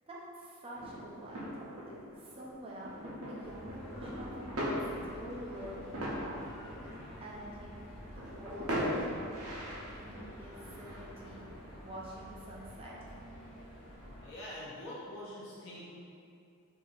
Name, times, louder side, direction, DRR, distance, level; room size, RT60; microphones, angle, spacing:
voice 1, 0.1-2.9 3.3-6.8 7.2-7.9 8.1-9.3 10.0-11.5 11.8-13.1, right 1 dB, 25° right, -5 dB, 0.6 m, -47 dB
sound 1, 0.7-11.9, equal, 70° right, 0.8 m, -40 dB
sound 2, 3.4-14.3, equal, 25° left, 1.0 m, -50 dB
voice 2, 14.2-15.9, left 1 dB, 55° left, -8 dB, 0.6 m, -44 dB
4.0 x 2.7 x 2.5 m, 2.5 s
head